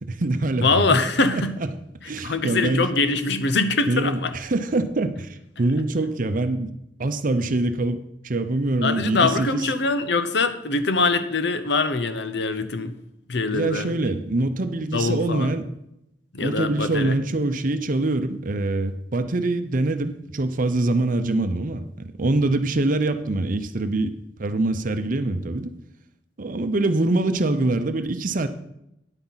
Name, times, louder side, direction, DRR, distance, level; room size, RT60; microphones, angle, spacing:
voice 1, 0.0-1.0 1.3-1.5 2.1-2.9 3.9-6.7 7.0-9.6 13.5-15.7 16.4-21.8 22.2-25.7 26.4-28.5, right 2 dB, 50° right, 0.7 m, -24 dB
voice 2, 0.6-1.5 2.2-4.3 8.8-12.9 13.3-13.9 14.9-15.5 16.3-17.2, left 3 dB, 65° left, 0.8 m, -23 dB
9.9 x 8.4 x 4.1 m
head